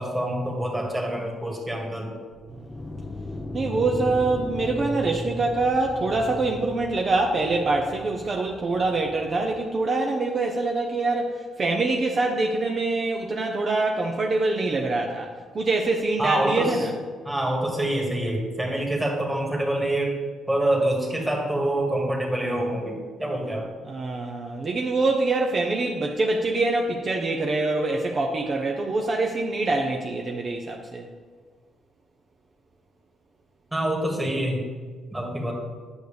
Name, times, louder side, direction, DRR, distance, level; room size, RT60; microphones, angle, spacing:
voice 1, 0.0-2.1 16.2-16.8 17.3-20.2 20.5-23.7 33.7-34.6 35.1-35.5, right 1 dB, 10° right, 0 dB, 1.9 m, -26 dB
sound 1, 2.3-9.6, left 1 dB, 15° left, 0.6 m, -37 dB
voice 2, 3.5-16.9 23.8-31.1, right 3 dB, 45° right, 1 dB, 0.7 m, -25 dB
9.2 x 6.4 x 3.4 m, 1.5 s
cardioid pair, 90°, 0 cm